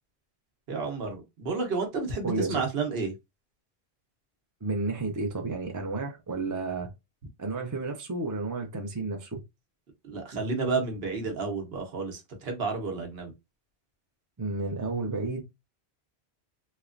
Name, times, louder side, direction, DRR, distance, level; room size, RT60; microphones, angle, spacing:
voice 1, 0.7-3.1 10.0-13.3, right 4 dB, 65° right, 1.0 m, -31 dB
voice 2, 2.2-2.6 4.6-6.9 7.4-9.4 14.4-15.4, right 3 dB, 25° right, 0.4 m, -31 dB
3.1 x 2.1 x 2.4 m
omnidirectional pair, 1.1 m